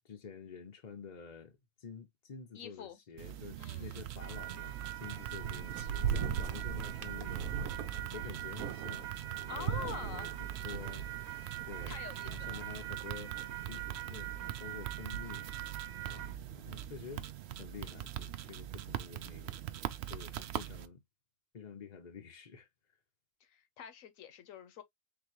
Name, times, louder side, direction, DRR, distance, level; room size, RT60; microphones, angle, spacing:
voice 1, 0.0-7.8 8.1-13.4 13.6-17.3 17.6-19.6 20.1-21.0 21.5-22.7, left 6 dB, 40° left, 0.6 m, -49 dB
voice 2, 2.5-3.0 3.6-4.0 9.5-10.3 11.9-12.6 23.4-24.8, left 8 dB, 70° left, 1.2 m, -46 dB
sound 1, 3.2-20.9, right 12 dB, 65° right, 0.6 m, -43 dB
sound 2, 4.2-16.4, right 9 dB, 85° right, 1.2 m, -39 dB
3.9 x 3.7 x 2.9 m
omnidirectional pair, 1.5 m